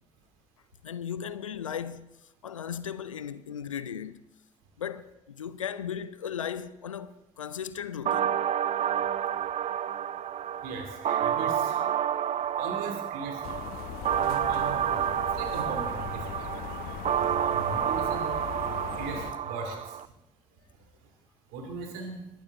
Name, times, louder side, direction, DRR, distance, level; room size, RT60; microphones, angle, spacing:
voice 1, 0.8-4.2 4.8-8.4, left 8 dB, 85° left, 0.5 m, -36 dB
sound 1, 8.1-20.1, right 9 dB, 40° right, 0.5 m, -29 dB
voice 2, 10.6-11.8 12.6-13.4 14.2-15.1 15.3-16.5 17.5-18.3 19.0-20.0 21.5-22.2, right 3 dB, 70° right, 2.6 m, -38 dB
sound 2, 13.4-19.3, left 11 dB, 65° left, 0.8 m, -39 dB
21.0 x 11.5 x 3.8 m
figure-of-eight pair, 45°, 16 cm